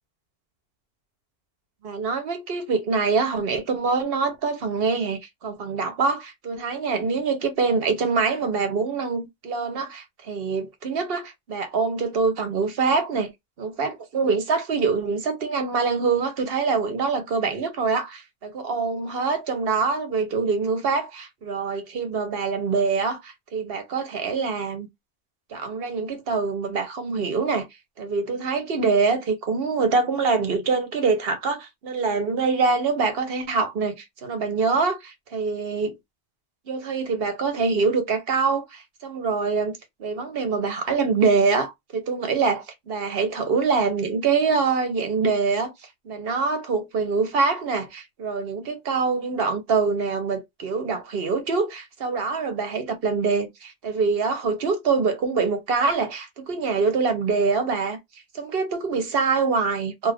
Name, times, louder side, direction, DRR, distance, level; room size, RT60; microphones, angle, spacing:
voice 1, 1.8-13.3 13.6-24.9 25.5-27.7 28.0-36.0 36.7-45.7 46.0-58.0 58.4-60.1, right 4 dB, 65° right, 1.0 m, -24 dB
2.6 x 2.4 x 3.3 m
omnidirectional pair, 1.1 m